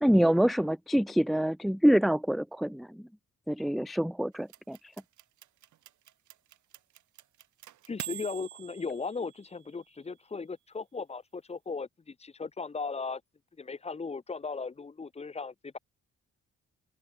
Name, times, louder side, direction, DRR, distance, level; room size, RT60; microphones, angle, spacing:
voice 1, 0.0-3.0 3.5-4.9, equal, ahead, 0.3 m, -26 dB
sound 1, 4.5-9.8, right 12 dB, 75° right, 2.4 m, -45 dB
voice 2, 7.9-13.2 13.6-15.8, left 4 dB, 20° left, 0.8 m, -37 dB
cardioid pair, 90°, 30 cm